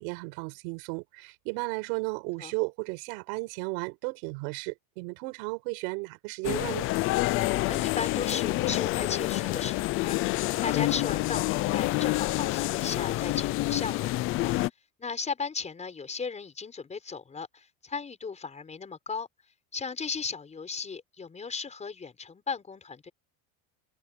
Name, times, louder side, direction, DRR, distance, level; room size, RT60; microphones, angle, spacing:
voice 1, 0.0-6.9, right 29 dB, 75° right, 4.7 m, -34 dB
sound 1, 6.4-14.7, left 18 dB, 30° left, 0.4 m, -28 dB
voice 2, 7.5-10.2 10.6-14.5 15.0-19.3 19.7-23.1, left 5 dB, 15° left, 4.8 m, -36 dB
cardioid pair, 165°, 43 cm